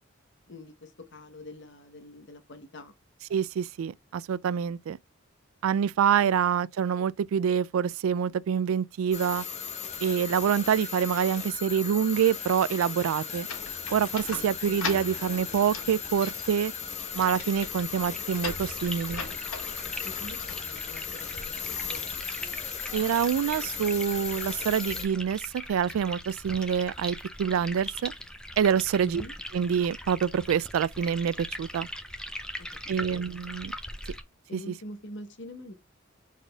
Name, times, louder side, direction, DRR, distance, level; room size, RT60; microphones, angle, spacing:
voice 1, 0.5-2.9 6.2-6.3 14.3-14.8 20.0-22.1 29.0-29.3 32.6-33.2 34.5-35.7, left 1 dB, 60° left, 1.0 m, -45 dB
voice 2, 3.3-5.0 5.6-9.4 10.0-13.5 13.9-16.7 17.1-19.2 22.9-25.4 25.7-28.1 28.6-29.2 29.5-31.9 32.9-33.7 34.5-34.7, right 8 dB, 80° right, 0.3 m, -26 dB
sound 1, 9.1-25.0, left 7 dB, 35° left, 1.0 m, -37 dB
sound 2, 13.5-21.3, left 4 dB, 80° left, 1.7 m, -41 dB
sound 3, 17.0-34.2, equal, 5° left, 0.5 m, -41 dB
4.8 x 4.1 x 2.3 m
head